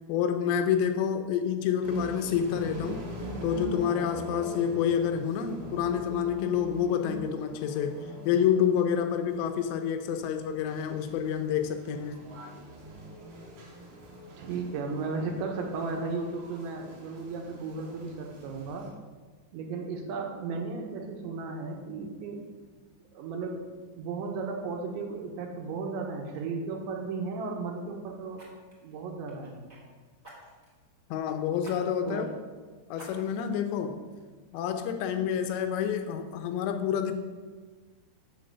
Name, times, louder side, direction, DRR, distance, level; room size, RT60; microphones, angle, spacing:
voice 1, 0.1-3.0 3.4-12.2 31.1-32.3 32.9-34.0 34.5-37.1, left 8 dB, 80° left, 6 dB, 2.9 m, -28 dB
sound 1, 1.8-18.9, right 1 dB, 65° right, 3.8 m, -42 dB
voice 2, 14.4-18.9 19.5-22.4 23.1-23.6 23.9-28.4 28.8-29.6 32.1-32.3, right 4 dB, 85° right, 2 dB, 3.6 m, -35 dB
Fire, 25.8-25.9 26.2-26.4 28.3-29.8 30.2-30.8 31.6-31.8 32.2-32.3 32.9-33.5 34.1-34.2, right 1 dB, 20° right, 2.1 m, -51 dB
7.7 x 7.2 x 6.7 m, 1.4 s
omnidirectional pair, 5.2 m